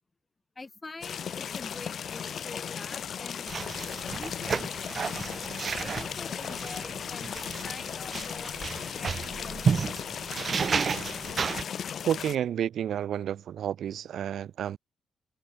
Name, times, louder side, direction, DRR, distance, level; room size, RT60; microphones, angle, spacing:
voice 1, 0.6-3.5 4.1-4.9 5.8-10.0, left 3 dB, 25° left, 3.9 m, -45 dB
sound 1, 1.0-12.4, left 8 dB, 55° left, 3.5 m, -36 dB
sound 2, 3.5-11.6, right 6 dB, 45° right, 1.7 m, -32 dB
voice 2, 12.0-14.8, right 10 dB, 65° right, 0.5 m, -30 dB
cardioid pair, 90°, 0 cm